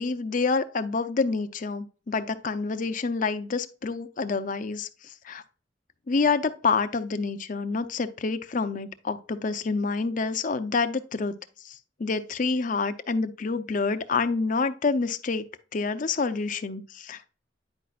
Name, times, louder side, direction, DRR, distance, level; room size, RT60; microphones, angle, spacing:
voice 1, 0.0-5.4 6.1-11.4 11.6-15.4 15.7-17.3, left 4 dB, 45° left, 0.6 m, -28 dB
9.7 x 5.0 x 2.4 m
head